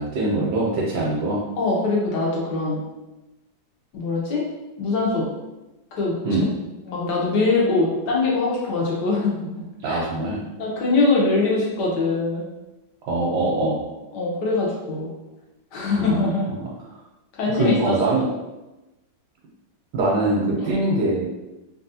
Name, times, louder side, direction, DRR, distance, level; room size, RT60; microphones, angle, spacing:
voice 1, 0.0-1.4 6.2-6.5 9.8-10.4 13.0-13.8 15.9-16.2 17.5-18.2 19.9-21.3, right 2 dB, 85° right, -4 dB, 1.3 m, -22 dB
voice 2, 1.6-2.8 3.9-4.5 4.8-5.3 5.9-6.5 6.9-10.0 10.6-12.4 14.1-15.1 15.7-16.5 17.3-18.2 20.6-20.7, left 3 dB, 80° left, -3 dB, 1.4 m, -23 dB
3.3 x 2.4 x 2.7 m, 1.0 s
omnidirectional pair, 1.8 m